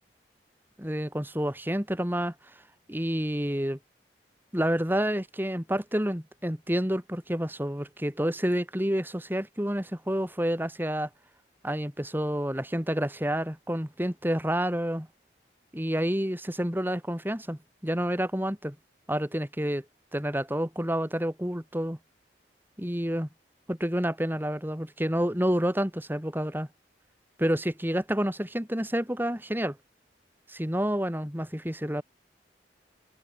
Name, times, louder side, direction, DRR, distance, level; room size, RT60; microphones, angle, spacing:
voice 1, 0.8-2.3 2.9-3.8 4.5-11.1 11.6-15.1 15.7-18.7 19.1-19.8 20.1-22.0 22.8-23.3 23.7-26.7 27.4-29.8 30.5-32.0, equal, 10° right, 3.3 m, -29 dB
head